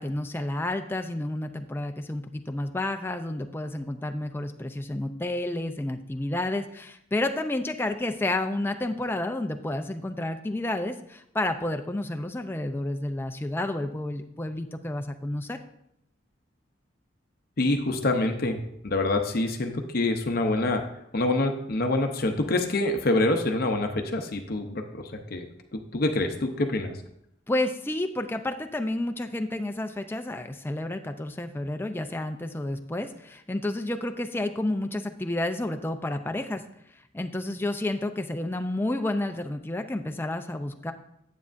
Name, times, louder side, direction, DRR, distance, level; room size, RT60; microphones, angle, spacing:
voice 1, 0.0-15.6 27.5-36.6 37.1-40.9, left 1 dB, 10° left, 6 dB, 0.4 m, -30 dB
voice 2, 17.6-20.8 21.1-25.0 25.3-25.4 25.7-26.9, left 2 dB, 50° left, 5 dB, 0.7 m, -26 dB
9.6 x 8.2 x 2.5 m, 0.78 s
head